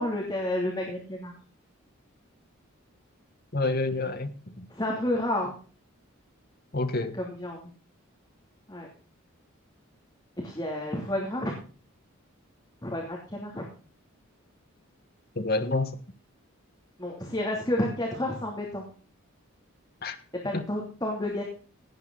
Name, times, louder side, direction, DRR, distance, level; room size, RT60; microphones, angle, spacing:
voice 1, 0.0-1.3 4.7-5.5 7.1-7.7 8.7-8.9 10.4-11.5 12.8-13.6 17.0-18.8 20.4-21.4, left 1 dB, 20° left, 2.9 m, -30 dB
voice 2, 3.5-4.6 6.7-7.1 15.3-16.0 20.0-20.2 20.5-20.6, left 2 dB, 45° left, 1.5 m, -28 dB
17.5 x 9.0 x 4.0 m
head